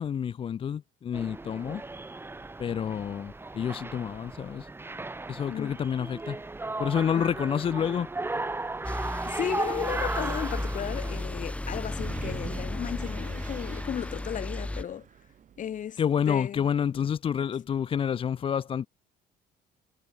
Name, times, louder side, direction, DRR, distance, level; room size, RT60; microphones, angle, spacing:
voice 1, 0.0-1.8 2.6-4.7 5.3-6.4 6.8-8.1 8.3-8.4 16.0-18.9, left 8 dB, 35° left, 0.4 m, -29 dB
sound 1, 1.1-11.2, right 2 dB, 15° right, 1.5 m, -36 dB
Wind, 8.6-15.9, right 9 dB, 50° right, 3.6 m, -48 dB
sound 2, 8.8-14.8, left 1 dB, 5° left, 1.4 m, -34 dB
voice 2, 8.9-15.1 15.6-16.0 16.3-16.7, left 9 dB, 50° left, 2.1 m, -35 dB
cardioid pair, 110°, 17 cm